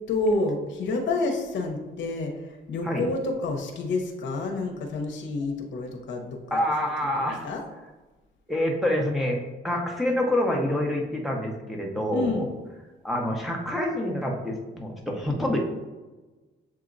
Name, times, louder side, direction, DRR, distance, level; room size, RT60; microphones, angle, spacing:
voice 1, 0.1-2.3 2.7-6.6 7.2-7.6 12.1-12.5, left 3 dB, 70° left, 2 dB, 0.8 m, -29 dB
voice 2, 6.5-7.5 8.5-9.4 9.6-12.5 13.0-15.6, left 1 dB, ahead, -1 dB, 0.9 m, -27 dB
7.4 x 2.8 x 2.5 m, 1.2 s
cardioid pair, 90°, 20 cm